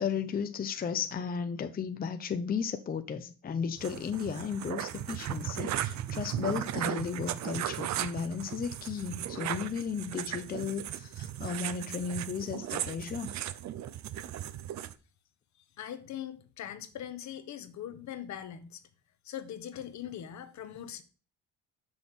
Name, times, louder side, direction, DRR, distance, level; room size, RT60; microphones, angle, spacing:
voice 1, 0.0-13.3, left 6 dB, 25° left, 0.6 m, -34 dB
sound 1, 3.8-14.9, right 11 dB, 55° right, 0.6 m, -36 dB
voice 2, 15.8-18.8 19.2-21.0, left 10 dB, 55° left, 1.0 m, -41 dB
6.5 x 6.2 x 3.6 m
supercardioid pair, 90°, 34 cm